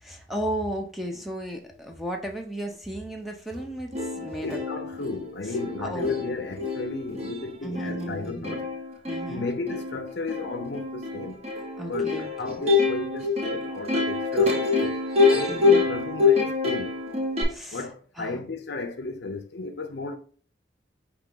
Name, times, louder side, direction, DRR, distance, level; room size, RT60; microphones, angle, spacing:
voice 1, 0.0-4.5 5.8-6.1 7.6-8.7 9.1-9.5 11.8-12.3 15.5-15.8 17.5-17.8 18.2-18.4, right 1 dB, ahead, 0.5 m, -34 dB
Plucked string instrument, 3.6-3.7 3.9-17.4, left 4 dB, 35° right, 0.9 m, -26 dB
voice 2, 4.4-8.7 9.3-11.4 11.8-15.0 15.3-16.9 17.7-20.2, left 3 dB, 60° left, 0.5 m, -34 dB
4.7 x 3.0 x 3.7 m
head